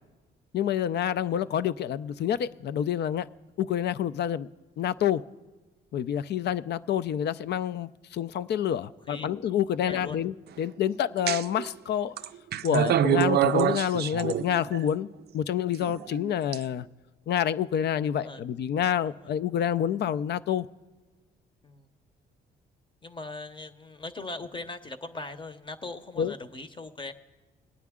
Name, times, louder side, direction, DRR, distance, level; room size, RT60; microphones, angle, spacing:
voice 1, 0.5-3.2 3.6-4.5 4.8-5.2 5.9-10.3 10.6-12.2 12.6-15.1 15.3-16.8 17.3-20.7 26.2-26.3, left 9 dB, 60° left, 0.4 m, -28 dB
voice 2, 9.8-10.2 18.2-18.4 19.0-19.3 21.6-21.9 23.0-27.1, left 3 dB, 25° left, 0.8 m, -40 dB
sound 1, 11.3-11.7 12.2-14.8 15.7-16.6, right 10 dB, 55° right, 0.4 m, -26 dB
21.0 x 9.3 x 3.6 m
cardioid pair, 90°, 20 cm